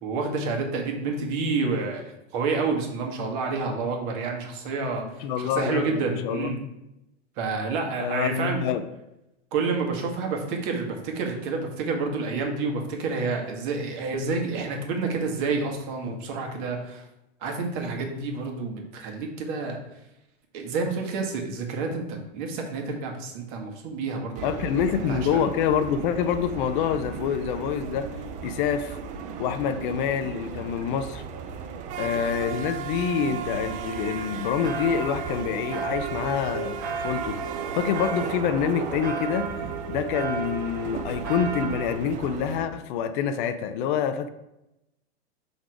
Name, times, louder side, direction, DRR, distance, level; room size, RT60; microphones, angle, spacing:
voice 1, 0.0-6.6 7.4-8.6 9.5-17.0 17.4-19.8 20.5-24.6 25.1-25.4, right 4 dB, 50° right, 2 dB, 1.6 m, -29 dB
voice 2, 5.2-6.5 8.0-8.8 24.4-28.1 28.4-29.0 29.4-31.2 32.0-36.8 37.0-37.4 37.7-39.5 39.9-44.3, left 7 dB, 50° left, 9 dB, 0.6 m, -26 dB
sound 1, 24.4-42.7, right 6 dB, 25° right, 0.4 m, -36 dB
sound 2, 34.6-42.0, right 5 dB, 80° right, 1.1 m, -34 dB
6.1 x 4.0 x 4.7 m, 0.89 s
hypercardioid pair, 130°, 33 cm